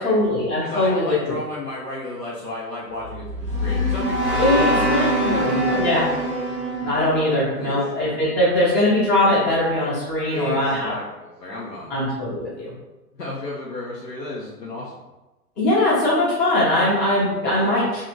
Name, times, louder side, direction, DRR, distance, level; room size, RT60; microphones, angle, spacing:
voice 1, 0.0-1.4 4.4-6.0 6.8-10.9 11.9-12.7 15.6-18.0, left 1 dB, 20° left, -8 dB, 0.8 m, -21 dB
voice 2, 0.6-6.3 7.6-7.9 10.3-11.9 13.1-15.0, left 2 dB, 90° left, -5 dB, 0.7 m, -33 dB
sound 1, 3.0-8.2, equal, 80° right, 0.9 m, -24 dB
2.8 x 2.4 x 2.5 m, 1.1 s
figure-of-eight pair, 105°, 48 cm